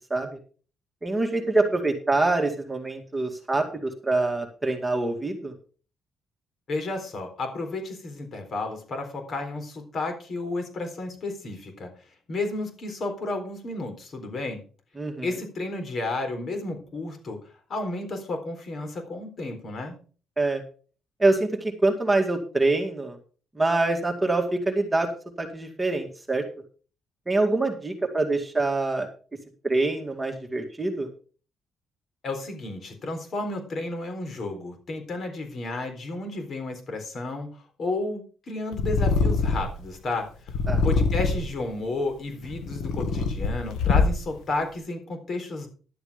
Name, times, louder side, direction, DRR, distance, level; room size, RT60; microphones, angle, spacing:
voice 1, 1.0-5.5 15.0-15.3 20.4-20.6 21.2-23.2 23.6-25.1 25.4-26.4 27.3-29.1 29.6-31.1 40.7-40.8, right 2 dB, 15° right, 2 dB, 2.2 m, -25 dB
voice 2, 6.7-11.9 12.3-14.6 15.2-17.4 17.7-20.0 32.2-37.5 37.8-40.3 40.8-45.7, left 2 dB, 50° left, 5 dB, 4.0 m, -32 dB
Purr, 38.7-39.8 40.5-41.6 42.3-44.4, left 4 dB, 85° left, 1.7 m, -24 dB
12.0 x 7.9 x 5.1 m, 0.39 s
cardioid pair, 90°, 0 cm